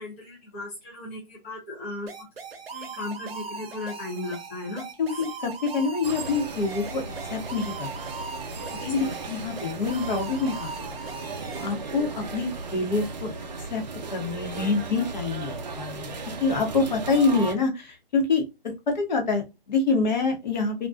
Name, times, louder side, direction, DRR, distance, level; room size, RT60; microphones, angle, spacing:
voice 1, 0.0-2.1 2.7-4.8 5.1-5.2 8.9-9.1, left 2 dB, 15° left, -5 dB, 0.4 m, -36 dB
sound 1, 2.1-11.7, right 5 dB, 85° right, 0.7 m, -39 dB
voice 2, 5.0-7.0 7.3-8.0 8.8-10.9 11.6-13.3 13.7-13.8 14.1-16.1 16.4-18.4 18.9-20.9, left 4 dB, 50° left, 4 dB, 0.9 m, -26 dB
sound 2, 6.0-17.5, right 3 dB, 50° right, 0.6 m, -36 dB
2.5 x 2.2 x 2.4 m, 0.25 s
hypercardioid pair, 150°, 29 cm